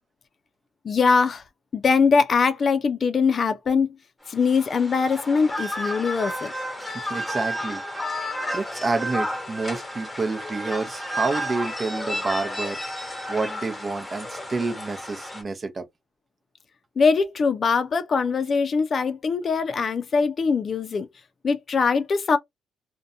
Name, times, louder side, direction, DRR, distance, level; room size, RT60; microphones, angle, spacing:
voice 1, 0.8-1.4 1.7-3.9 4.3-6.5 17.0-21.1 21.4-22.4, left 5 dB, 45° left, 0.4 m, -22 dB
sound 1, 4.3-15.4, equal, 10° left, 1.0 m, -32 dB
voice 2, 6.8-8.2 8.5-12.8 13.3-15.8, right 3 dB, 35° right, 0.7 m, -29 dB
2.5 x 2.2 x 2.6 m
cardioid pair, 90°, 0 cm